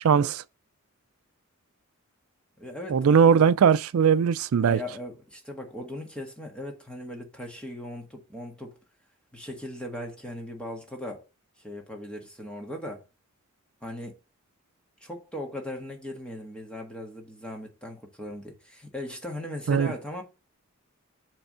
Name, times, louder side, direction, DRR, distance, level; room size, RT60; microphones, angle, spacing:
voice 1, 0.0-0.4 2.9-4.8 19.7-19.9, right 7 dB, 85° right, 0.4 m, -20 dB
voice 2, 2.6-3.5 4.6-8.8 9.3-11.3 11.6-13.0 13.8-14.2 15.0-20.2, left 1 dB, 5° left, 1.6 m, -38 dB
6.8 x 3.5 x 5.5 m
head